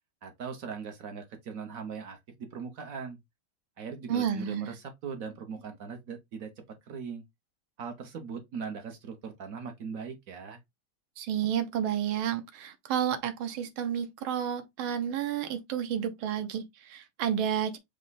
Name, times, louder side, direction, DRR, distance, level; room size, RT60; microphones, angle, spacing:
voice 1, 0.2-3.2 3.8-6.5 6.8-7.2 7.8-10.6, right 6 dB, 60° right, 0.9 m, -40 dB
voice 2, 4.1-4.7 11.2-17.8, right 9 dB, 75° right, 1.6 m, -31 dB
5.1 x 2.2 x 3.9 m
omnidirectional pair, 2.3 m